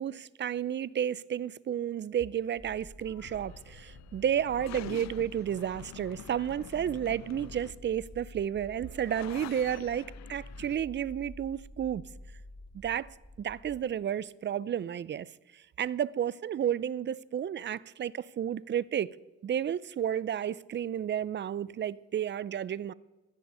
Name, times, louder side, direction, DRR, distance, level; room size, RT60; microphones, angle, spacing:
voice 1, 0.0-12.0 12.7-19.1 19.4-22.9, right 9 dB, 40° right, 0.4 m, -32 dB
sound 1, 2.6-13.8, left 1 dB, 15° left, 2.7 m, -50 dB
sound 2, 3.0-10.8, left 13 dB, 65° left, 0.4 m, -48 dB
15.5 x 6.9 x 6.8 m
cardioid pair, 90°, 30 cm